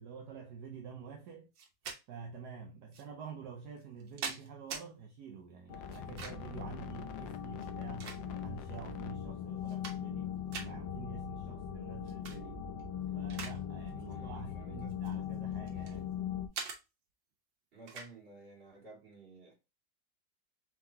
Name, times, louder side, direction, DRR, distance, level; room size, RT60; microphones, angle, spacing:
voice 1, 0.0-1.5 2.1-12.7 13.1-16.2, right 5 dB, 70° right, 1.2 m, -48 dB
sound 1, 1.6-2.0 2.9-3.0 3.8-4.9 5.9-6.6 7.5-8.6 9.1-9.2 9.6-10.2 10.5-10.7 12.1-12.4 12.8-13.6 13.9-14.1 14.9-16.0 16.5-16.8 17.9-18.1, right 5 dB, 85° right, 1.7 m, -43 dB
sound 2, 5.7-16.5, left 9 dB, 90° left, 1.4 m, -40 dB
voice 2, 14.1-14.9 17.7-19.5, right 2 dB, 30° right, 2.2 m, -54 dB
4.5 x 3.7 x 2.7 m
omnidirectional pair, 2.0 m